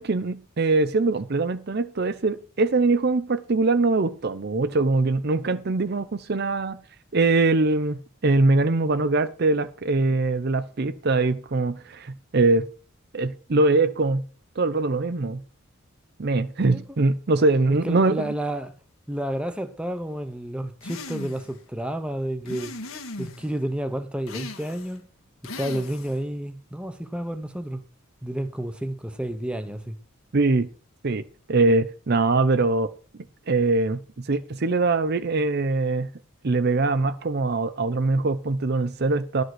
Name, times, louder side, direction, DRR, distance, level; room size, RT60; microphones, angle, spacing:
voice 1, 0.0-6.8 7.1-12.7 13.1-14.2 14.6-15.4 16.2-18.3 30.3-30.7 31.0-32.9 33.5-34.0 34.3-36.1 36.4-39.4, right 3 dB, 50° right, 0.6 m, -22 dB
voice 2, 17.8-18.7 19.1-22.7 23.2-25.1 25.6-27.8 28.2-30.0, right 1 dB, 5° right, 0.9 m, -30 dB
sound 1, 20.8-21.6 22.4-23.5 24.3-25.0 25.4-26.2, left 2 dB, 75° left, 1.6 m, -38 dB
11.5 x 5.3 x 7.7 m
head